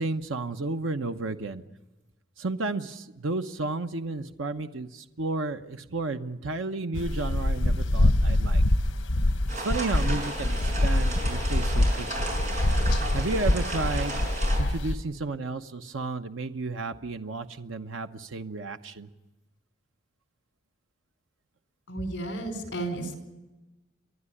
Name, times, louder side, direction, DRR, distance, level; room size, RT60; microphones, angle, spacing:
voice 1, 0.0-1.6 2.4-8.6 9.5-12.3 13.1-14.2 14.6-19.1, right 3 dB, 90° right, 8 dB, 0.9 m, -32 dB
sound 1, 6.9-14.9, left 1 dB, 85° left, 1.1 m, -25 dB
sound 2, 9.5-14.6, right 2 dB, 40° right, 6.3 m, -34 dB
voice 2, 21.9-23.1, right 2 dB, 60° left, 5 dB, 4.7 m, -32 dB
30.0 x 11.5 x 9.9 m, 1.1 s
head